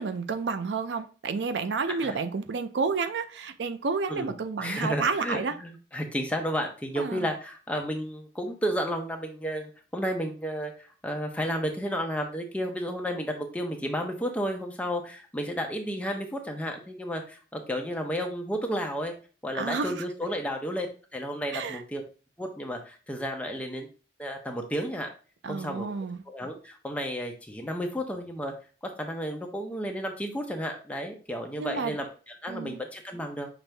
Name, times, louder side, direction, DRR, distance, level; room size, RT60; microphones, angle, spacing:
voice 1, 0.0-5.6 7.0-7.3 19.5-20.0 21.5-21.8 25.4-26.2 31.6-32.0 32.5-32.8, right 4 dB, 75° right, 0.4 m, -30 dB
voice 2, 1.9-2.2 4.1-4.3 4.6-19.1 19.4-20.9 21.1-22.0 22.4-23.9 24.2-25.1 25.5-25.9 26.3-28.5 28.8-33.5, equal, 10° left, 0.7 m, -32 dB
6.0 x 2.6 x 3.3 m
head